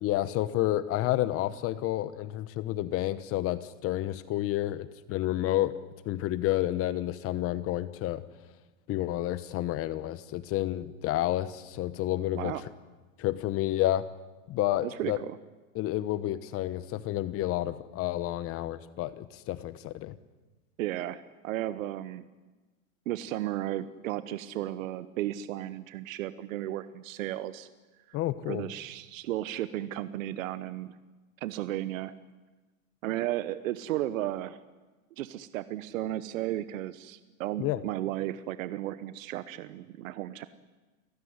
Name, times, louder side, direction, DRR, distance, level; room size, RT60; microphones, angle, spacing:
voice 1, 0.0-5.8 6.1-8.2 8.9-12.7 13.2-14.1 14.5-15.2 15.7-20.1 28.1-28.7 37.6-37.8, left 14 dB, 30° left, 14 dB, 1.0 m, -30 dB
voice 2, 14.8-15.4 20.8-22.3 23.1-27.7 28.1-28.2 28.5-30.9 31.4-32.1 33.0-34.6 35.2-40.5, right 14 dB, 65° right, 13 dB, 1.2 m, -34 dB
29.5 x 16.5 x 9.6 m, 1.2 s
supercardioid pair, 135°, 42 cm